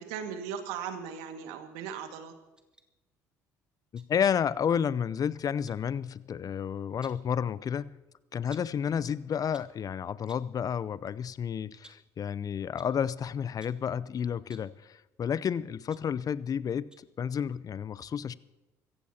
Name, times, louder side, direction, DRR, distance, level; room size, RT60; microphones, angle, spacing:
voice 1, 0.0-2.3, right 7 dB, 75° right, 6 dB, 1.9 m, -38 dB
sound 1, 2.6-2.9 3.9-4.6 5.7-5.9 6.8-7.3 8.5-8.8 9.3-9.8 10.3-10.6 11.1-11.2 11.7-12.2 12.8-13.0 13.6-13.9 14.4-14.8 15.5-16.6 16.9-17.2 17.5-17.6, right 1 dB, 10° right, 1.8 m, -57 dB
voice 2, 3.9-8.0 8.3-16.9 17.2-18.3, left 8 dB, 40° left, 18 dB, 0.6 m, -31 dB
25.0 x 15.5 x 2.9 m, 1.1 s
hypercardioid pair, 60°, 9 cm